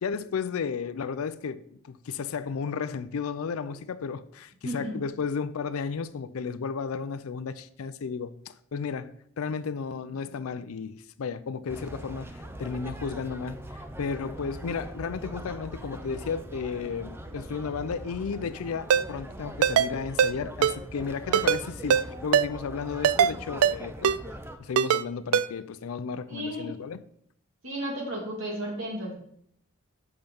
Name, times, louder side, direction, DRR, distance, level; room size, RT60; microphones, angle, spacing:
voice 1, 0.0-9.1 9.4-24.2 24.6-27.0, left 5 dB, 80° left, 0.4 m, -33 dB
voice 2, 4.6-4.9 26.3-26.7 27.6-29.1, equal, 65° right, 2.4 m, -33 dB
sound 1, 11.7-24.6, right 1 dB, 10° right, 0.5 m, -41 dB
Ringtone, 18.9-19.0 19.6-19.9 20.2-20.3 20.6-20.8 21.3-21.6 21.9-22.0 22.3-22.5 23.0-23.3 23.6-23.8 24.0-24.2 24.8-25.0 25.3-25.5, right 8 dB, 85° right, 0.3 m, -21 dB
5.9 x 5.2 x 5.4 m
head